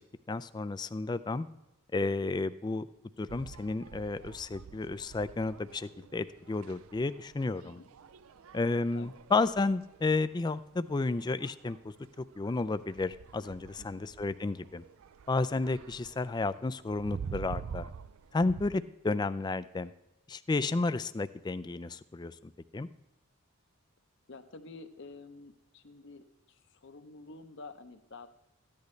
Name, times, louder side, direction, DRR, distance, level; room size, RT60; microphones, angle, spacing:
voice 1, 0.3-1.5 1.9-2.9 3.2-7.8 8.5-14.8 15.3-17.9 18.3-19.9 20.3-22.9, left 3 dB, 20° left, 14 dB, 0.3 m, -32 dB
sound 1, 3.3-18.7, right 6 dB, 75° right, 0.4 m, -48 dB
voice 2, 24.3-28.3, left 3 dB, 55° left, 9 dB, 0.8 m, -50 dB
14.5 x 10.5 x 3.2 m, 0.94 s
head